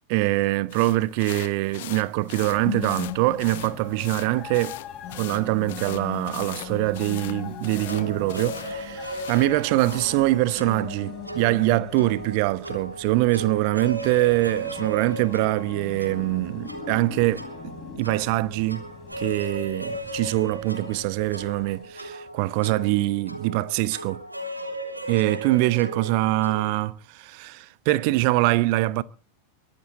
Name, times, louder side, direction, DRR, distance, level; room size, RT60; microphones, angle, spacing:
voice 1, 0.1-4.8 5.1-18.9 19.2-24.2 25.1-29.0, right 19 dB, 45° right, 0.9 m, -24 dB
sound 1, 0.7-10.2, left 16 dB, 55° left, 1.0 m, -41 dB
sound 2, 2.3-21.9, left 8 dB, 30° left, 3.9 m, -40 dB
sound 3, 7.8-26.7, right 1 dB, 85° right, 3.3 m, -36 dB
23.0 x 13.0 x 4.0 m
figure-of-eight pair, 90°, 0 cm